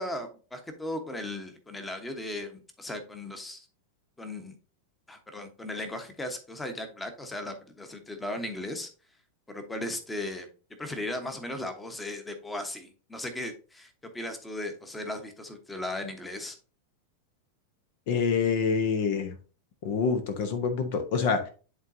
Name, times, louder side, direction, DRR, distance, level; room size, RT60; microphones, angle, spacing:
voice 1, 0.0-3.7 4.2-4.6 5.1-8.9 9.5-10.5 10.8-16.6, left 1 dB, 10° left, 7 dB, 1.2 m, -37 dB
voice 2, 18.1-19.3 19.8-21.5, left 5 dB, 50° left, 8 dB, 0.9 m, -26 dB
11.0 x 3.9 x 2.7 m, 0.37 s
figure-of-eight pair, 90°, 0 cm